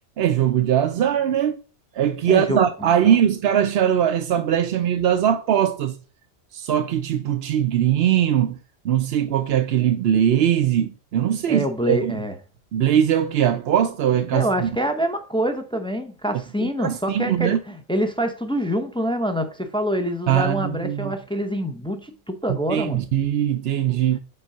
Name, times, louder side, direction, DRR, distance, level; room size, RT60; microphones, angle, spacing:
voice 1, 0.2-1.5 1.9-6.0 6.5-8.6 8.8-12.1 12.7-14.7 16.6-17.6 20.3-21.1 22.5-24.2, right 10 dB, 65° right, 0.8 m, -21 dB
voice 2, 2.3-3.2 11.5-12.3 14.3-23.1, equal, 5° left, 0.6 m, -26 dB
5.5 x 4.8 x 5.6 m
omnidirectional pair, 1.2 m